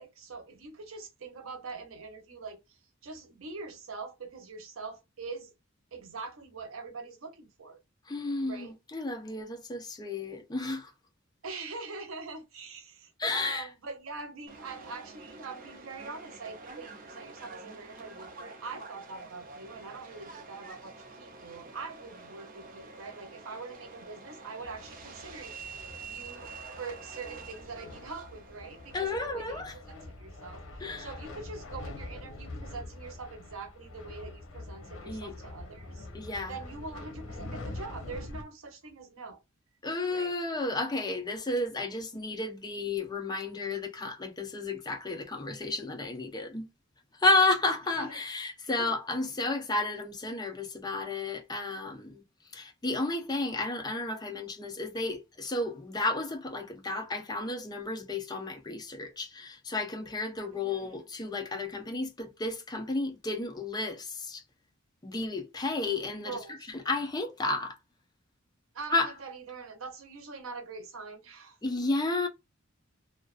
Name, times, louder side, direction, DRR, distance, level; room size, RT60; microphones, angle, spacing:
voice 1, 0.0-5.5 5.9-7.8 8.4-8.7 11.4-29.6 29.9-36.1 36.5-39.4 40.1-40.3 48.0-48.2 48.8-48.9 60.6-61.0 66.2-66.7 68.7-71.6, right 4 dB, 90° right, 0.7 m, -43 dB
voice 2, 8.1-10.9 13.2-13.7 28.9-29.7 30.8-31.1 35.1-35.3 36.1-36.6 39.8-46.7 47.1-52.2 52.5-64.4 65.0-66.4 66.7-67.8 68.9-69.1 71.6-72.3, left 2 dB, 20° left, 0.5 m, -32 dB
Subway metro underground, 14.5-29.1, right 3 dB, 45° right, 0.6 m, -47 dB
sound 1, 24.6-38.4, left 2 dB, 80° left, 0.8 m, -45 dB
2.5 x 2.3 x 2.4 m
head